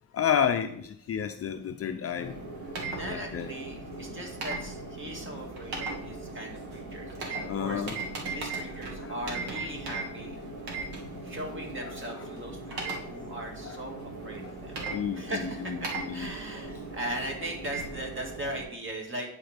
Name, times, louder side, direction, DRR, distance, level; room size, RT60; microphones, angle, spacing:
voice 1, 0.1-2.3 3.0-3.5 7.5-8.0 8.7-9.1 9.5-9.6 11.2-11.5 12.2-12.3 12.7-12.8 13.6-13.8 14.4-14.5 14.9-15.8 16.1-16.3, left 8 dB, 40° left, 8 dB, 0.5 m, -31 dB
sound 1, 2.2-18.6, right 3 dB, 75° right, 1.8 m, -38 dB
voice 2, 2.7-7.9 8.3-10.4 11.2-14.8 15.1-15.7 16.1-19.3, right 1 dB, 30° right, 1 dB, 2.1 m, -39 dB
10.5 x 4.4 x 3.4 m, 0.66 s
cardioid pair, 90°, 38 cm